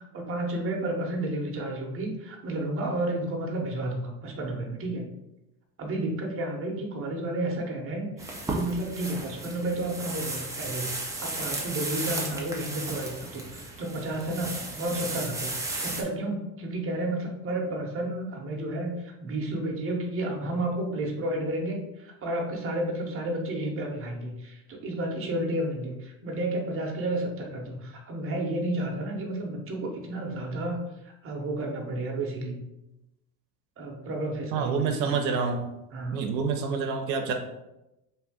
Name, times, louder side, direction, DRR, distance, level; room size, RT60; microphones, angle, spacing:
voice 1, 0.1-5.1 5.8-30.8 31.2-32.6 33.8-35.3 35.9-36.3, right 1 dB, 25° right, 0 dB, 0.8 m, -31 dB
sound 1, 8.2-16.0, right 2 dB, 5° right, 0.4 m, -34 dB
voice 2, 34.5-35.7 36.1-37.3, right 5 dB, 85° right, 4 dB, 0.6 m, -27 dB
2.7 x 2.5 x 3.5 m, 0.92 s
supercardioid pair, 95°, 49 cm